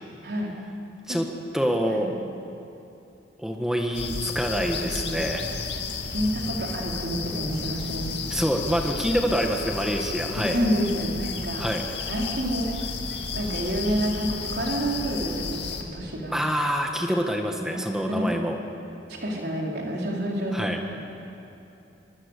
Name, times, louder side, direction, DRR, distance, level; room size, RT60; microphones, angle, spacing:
voice 1, 0.2-0.5 1.1-1.2 1.9-2.1 4.7-5.3 6.1-8.1 10.3-11.7 12.1-12.9 13.3-16.4 17.5-18.3 19.1-21.0, equal, 60° right, -2 dB, 4.6 m, -29 dB
voice 2, 1.5-2.1 3.4-5.4 8.3-10.6 11.6-11.8 16.3-18.6 20.5-20.8, equal, 5° right, 2 dB, 1.5 m, -26 dB
sound 1, 3.9-15.8, left 4 dB, 70° left, 2.5 m, -32 dB
24.0 x 22.5 x 8.4 m, 2.8 s
head